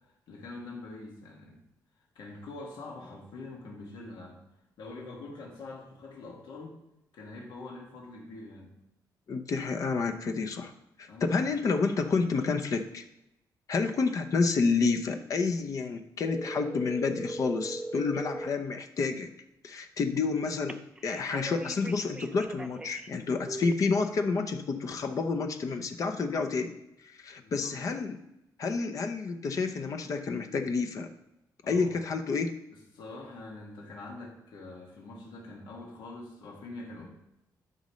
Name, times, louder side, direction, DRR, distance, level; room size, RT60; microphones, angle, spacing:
voice 1, 0.3-1.6 2.2-4.4 4.8-6.8 7.1-8.7 11.1-11.4 27.4-27.8 31.6-31.9 32.9-37.1, left 2 dB, 85° left, -2 dB, 1.9 m, -44 dB
voice 2, 9.3-10.7 11.0-13.0 13.7-19.3 19.6-26.8 27.0-28.2 28.6-31.1 31.7-32.5, left 4 dB, 50° left, 6 dB, 0.7 m, -29 dB
sound 1, 16.2-18.5 20.7-23.1 23.5-23.7, right 2 dB, 10° right, 0.4 m, -38 dB
12.0 x 5.3 x 3.1 m, 0.86 s
cardioid pair, 130°, 7 cm